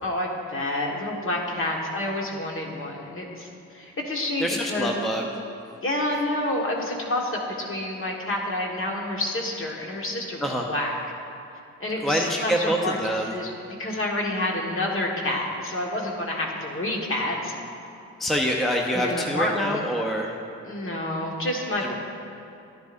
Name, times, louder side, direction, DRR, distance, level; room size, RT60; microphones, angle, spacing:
voice 1, 0.0-3.5 3.7-4.9 5.8-10.9 11.8-13.5 13.8-17.5 18.9-19.8 20.7-21.9, left 1 dB, 45° left, -1 dB, 1.6 m, -28 dB
voice 2, 4.4-5.2 10.4-10.7 12.0-13.3 18.2-20.4 21.8-21.9, equal, ahead, 1 dB, 0.7 m, -26 dB
11.5 x 10.0 x 2.6 m, 2.7 s
cardioid pair, 90°, 30 cm